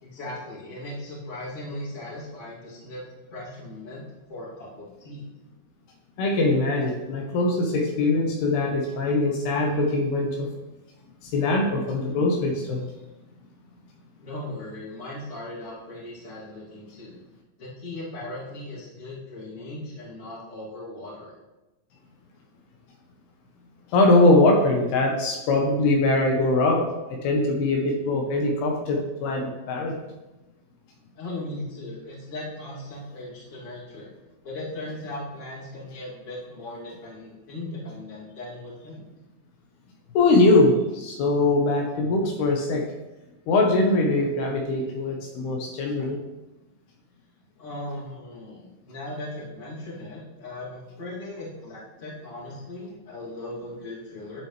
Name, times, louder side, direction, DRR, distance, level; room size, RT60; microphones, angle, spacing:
voice 1, 0.0-3.0 3.3-4.0 4.3-5.2 14.2-17.1 17.6-21.3 31.1-34.1 34.4-39.0 47.6-54.4, left 1 dB, 20° left, -7 dB, 2.3 m, -38 dB
voice 2, 6.2-10.5 11.2-12.8 23.9-30.0 40.1-42.9 43.5-46.2, left 2 dB, 75° left, 1 dB, 3.0 m, -22 dB
11.0 x 7.4 x 3.3 m, 1.0 s
omnidirectional pair, 4.7 m